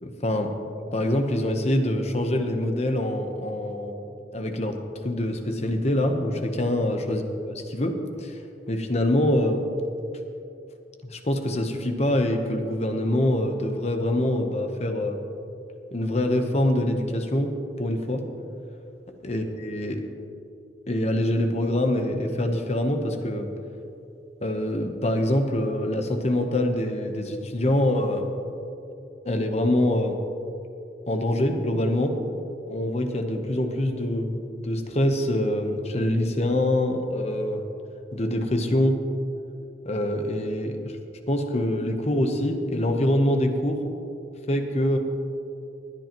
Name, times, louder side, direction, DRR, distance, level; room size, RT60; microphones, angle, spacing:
voice 1, 0.0-0.5 0.9-4.0 4.3-4.8 5.0-8.4 8.7-9.6 11.0-15.2 15.9-18.2 19.2-20.0 20.9-23.5 24.4-28.3 29.2-30.2 31.1-32.2 32.7-37.6 38.1-39.0 39.8-40.9 41.3-43.8 44.5-45.0, left 1 dB, 35° left, 5 dB, 0.9 m, -25 dB
19.5 x 10.0 x 3.0 m, 2.7 s
head